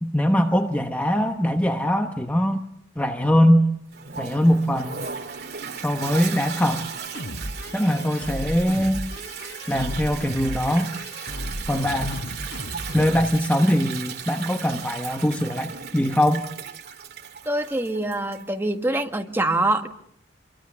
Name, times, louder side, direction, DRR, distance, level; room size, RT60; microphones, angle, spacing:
voice 1, 0.0-2.6 3.0-3.7 4.2-5.0 5.8-6.9 7.7-9.0 9.7-10.9 11.7-12.3 12.9-16.4, equal, 10° left, 4 dB, 1.1 m, -22 dB
Toilet flush, 3.9-18.5, right 7 dB, 55° right, 2.4 m, -36 dB
sound 1, 7.1-13.3, equal, 80° left, 5.3 m, -34 dB
voice 2, 17.4-19.9, right 2 dB, 10° right, 4 dB, 1.8 m, -24 dB
27.0 x 23.5 x 7.2 m, 0.72 s
head